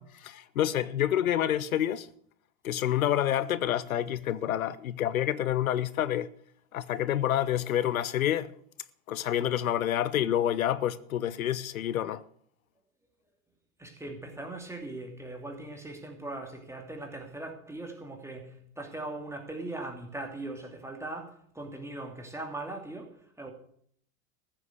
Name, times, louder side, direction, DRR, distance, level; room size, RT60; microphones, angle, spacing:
voice 1, 0.0-2.1 2.6-6.3 6.7-8.5 9.1-12.2, left 11 dB, 90° left, 0.7 m, -28 dB
voice 2, 13.8-23.5, right 2 dB, 5° right, 2.7 m, -40 dB
14.5 x 7.6 x 8.0 m
hypercardioid pair, 95°, 40 cm